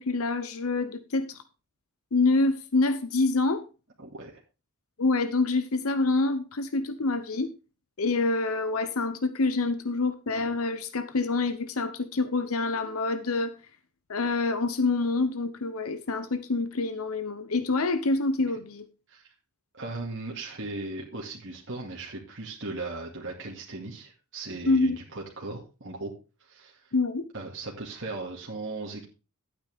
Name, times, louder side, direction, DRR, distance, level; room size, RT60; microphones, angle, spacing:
voice 1, 0.0-1.4 2.1-3.6 5.0-7.5 8.0-13.5 14.1-18.8 24.7-25.0 26.9-27.2, left 3 dB, 70° left, 11 dB, 0.9 m, -26 dB
voice 2, 4.0-4.4 19.1-19.3 19.8-26.1 26.4-26.9 27.3-29.0, right 2 dB, 55° right, -2 dB, 2.1 m, -37 dB
11.5 x 8.8 x 3.5 m, 0.31 s
head